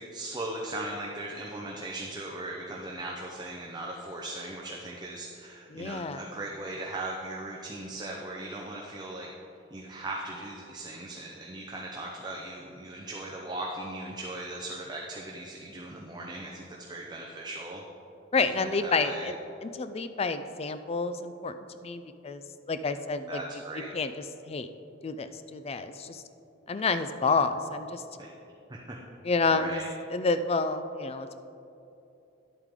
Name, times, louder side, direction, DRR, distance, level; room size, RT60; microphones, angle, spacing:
voice 1, 0.0-9.3 9.7-17.8 18.5-19.3 23.3-23.9 28.2-28.3 28.7-29.0 29.5-29.9, right 2 dB, 20° right, -2 dB, 0.7 m, -38 dB
voice 2, 5.7-6.2 18.3-21.5 21.8-22.4 22.7-23.4 23.9-24.1 24.5-24.7 25.0-26.2 26.7-28.0 29.2-29.8 30.1-31.4, left 4 dB, 30° left, 10 dB, 0.4 m, -29 dB
11.0 x 8.1 x 3.7 m, 2.8 s
head